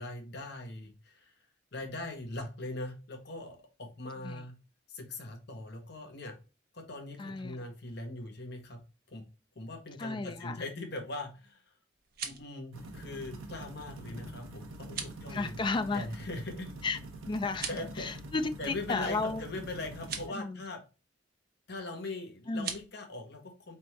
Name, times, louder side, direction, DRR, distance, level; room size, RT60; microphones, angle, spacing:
voice 1, 0.0-1.5 1.7-4.5 4.9-6.4 6.7-8.8 9.1-9.2 9.5-11.7 12.2-15.6 15.9-16.8 17.7-18.1 18.6-20.8 21.7-23.8, left 2 dB, 55° left, 1.0 m, -41 dB
voice 2, 7.2-7.6 10.0-10.6 14.1-14.3 15.3-16.1 16.8-17.0 17.3-17.7 18.0-19.4 20.3-20.6 22.5-22.7, left 3 dB, 25° left, 0.3 m, -33 dB
sound 1, 11.9-12.5 14.8-15.2 17.5-17.9 20.0-20.3 22.5-22.9, right 7 dB, 50° right, 0.8 m, -39 dB
sound 2, 12.7-20.3, right 2 dB, 85° right, 0.9 m, -45 dB
4.4 x 3.4 x 3.0 m
head